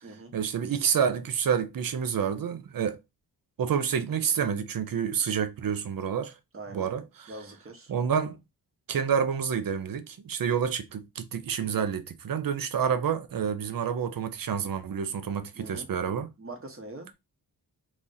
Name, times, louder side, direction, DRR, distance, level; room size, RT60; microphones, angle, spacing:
voice 1, 0.3-3.0 3.6-6.3 6.7-7.3 7.9-8.4 8.9-16.3, right 7 dB, 55° right, 0.6 m, -28 dB
voice 2, 6.5-7.9 15.5-15.9 16.4-17.1, right 2 dB, 35° right, 1.0 m, -43 dB
3.0 x 2.6 x 3.8 m
wide cardioid pair, 125°, 40 cm